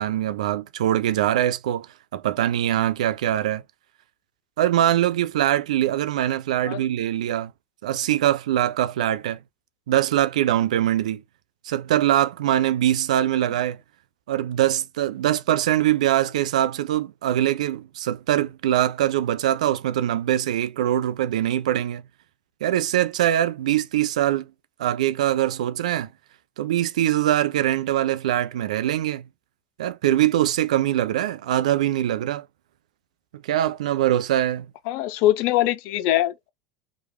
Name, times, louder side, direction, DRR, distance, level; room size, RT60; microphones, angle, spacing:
voice 1, 0.0-1.9 2.1-3.6 4.6-7.5 7.8-9.4 9.9-11.2 11.6-13.8 14.3-22.0 22.6-24.5 24.8-26.1 26.6-29.3 29.8-32.5 33.4-34.7, right 12 dB, 75° right, 0.4 m, -22 dB
voice 2, 34.9-36.5, left 14 dB, 60° left, 0.5 m, -22 dB
3.0 x 2.4 x 2.9 m
hypercardioid pair, 80°, 4 cm